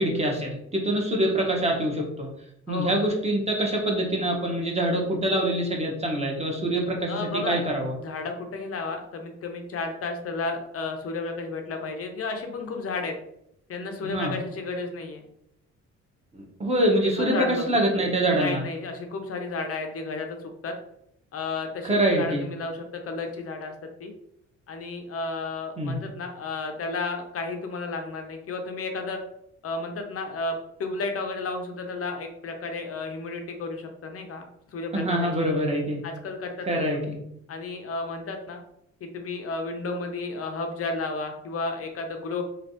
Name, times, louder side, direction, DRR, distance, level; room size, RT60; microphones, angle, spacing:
voice 1, 0.0-2.3 2.7-7.9 14.0-14.3 16.3-18.6 21.8-22.4 25.8-25.9 34.9-36.0 36.7-37.0, right 1 dB, 20° right, 0 dB, 0.9 m, -25 dB
voice 2, 2.7-3.0 7.1-7.6 8.0-13.2 13.7-15.2 17.0-17.7 18.3-20.4 20.6-20.8 21.3-24.1 24.7-29.2 29.6-34.4 34.7-35.3 36.0-36.8 37.5-38.6 39.0-42.4, left 3 dB, 50° left, 4 dB, 0.6 m, -32 dB
3.2 x 2.3 x 2.7 m, 0.77 s
cardioid pair, 90°, 30 cm